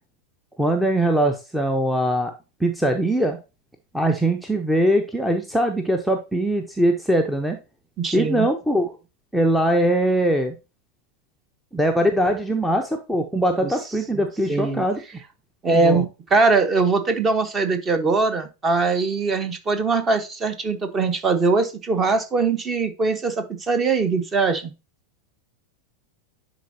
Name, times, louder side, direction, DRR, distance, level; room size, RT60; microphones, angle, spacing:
voice 1, 0.6-2.3 2.6-3.4 3.9-7.6 8.1-8.9 9.3-10.5 11.7-15.0 15.7-16.0, right 1 dB, ahead, 5 dB, 0.7 m, -21 dB
voice 2, 8.0-8.5 13.6-13.7 14.1-14.8 15.6-24.7, right 4 dB, 20° right, 9 dB, 1.1 m, -21 dB
10.5 x 4.0 x 2.7 m, 0.29 s
figure-of-eight pair, 90°, 0 cm